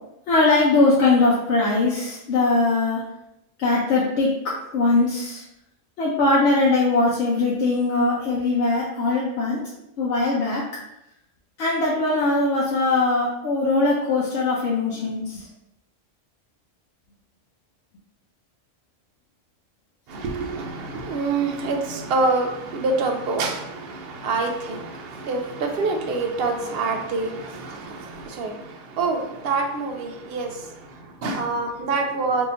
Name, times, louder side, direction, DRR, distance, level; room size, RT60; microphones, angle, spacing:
voice 1, 0.3-3.0 3.6-5.4 6.0-9.6 10.0-10.6 11.6-15.5, left 3 dB, 65° left, -4 dB, 0.9 m, -21 dB
voice 2, 20.1-32.5, right 3 dB, 60° right, 3 dB, 0.7 m, -26 dB
2.7 x 2.6 x 4.1 m, 0.85 s
omnidirectional pair, 1.4 m